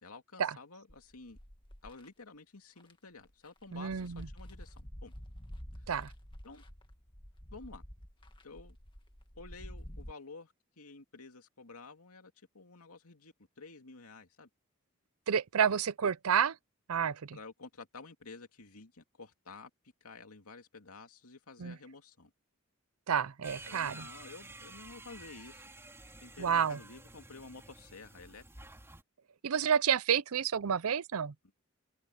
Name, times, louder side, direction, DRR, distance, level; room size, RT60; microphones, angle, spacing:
voice 1, 0.0-1.4 1.8-5.1 6.4-6.6 7.5-7.8 8.4-8.8 9.3-14.5 17.3-19.7 20.0-22.3 23.7-25.7 26.2-28.4, left 3 dB, 90° left, 2.5 m, -51 dB
sound 1, 0.9-2.1 2.8-2.9 3.2-10.1, equal, 20° left, 2.0 m, -49 dB
voice 2, 3.7-4.3 5.9-6.1 15.3-16.6 16.9-17.4 21.6-21.8 23.1-24.0 26.4-26.8 29.4-31.3, right 7 dB, 80° right, 0.6 m, -30 dB
sound 2, 23.4-29.0, right 2 dB, 10° right, 3.8 m, -51 dB
head